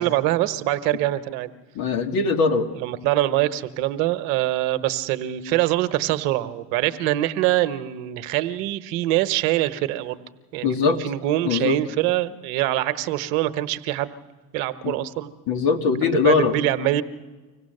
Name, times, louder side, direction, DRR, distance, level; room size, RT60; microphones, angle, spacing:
voice 1, 0.0-1.5 2.8-10.2 10.5-14.2 14.5-15.3 16.0-17.0, right 14 dB, 65° right, 11 dB, 1.1 m, -24 dB
voice 2, 1.7-2.7 10.6-11.0 11.4-11.8 14.8-15.0 15.5-16.5, left 5 dB, 55° left, 5 dB, 2.0 m, -21 dB
25.0 x 17.0 x 6.6 m, 1.3 s
hypercardioid pair, 85°, 41 cm